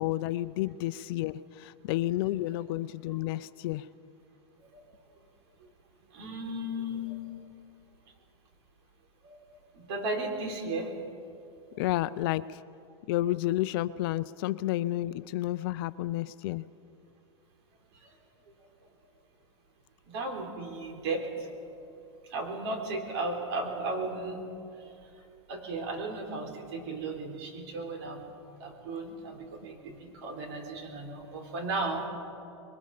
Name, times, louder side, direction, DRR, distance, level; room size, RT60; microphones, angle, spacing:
voice 1, 0.0-3.8 11.8-12.4 13.1-16.6, left 15 dB, 50° left, 15 dB, 0.5 m, -31 dB
voice 2, 6.1-7.2 9.2-10.9 11.7-11.8 18.0-18.2 20.1-21.5 22.3-24.4 24.8-25.1 25.5-28.3 28.6-32.1, right 2 dB, 60° right, 2 dB, 4.1 m, -35 dB
26.0 x 22.0 x 5.0 m, 2.6 s
supercardioid pair, 140°, 16 cm